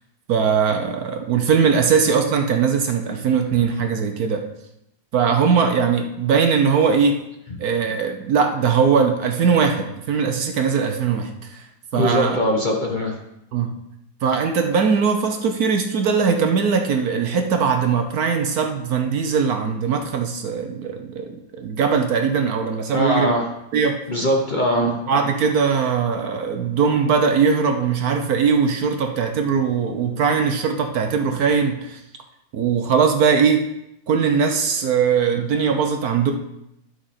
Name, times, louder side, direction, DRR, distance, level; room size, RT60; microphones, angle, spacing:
voice 1, 0.3-4.4 5.1-7.2 7.6-11.6 11.9-12.4 13.5-13.7 14.2-23.3 23.7-24.0 24.8-32.0 32.5-33.7 34.1-36.3, right 6 dB, 65° right, 5 dB, 1.2 m, -20 dB
voice 2, 11.9-13.1 22.9-23.5 24.1-25.0, left 1 dB, 35° left, -1 dB, 1.0 m, -21 dB
11.5 x 6.2 x 4.3 m, 0.84 s
omnidirectional pair, 1.9 m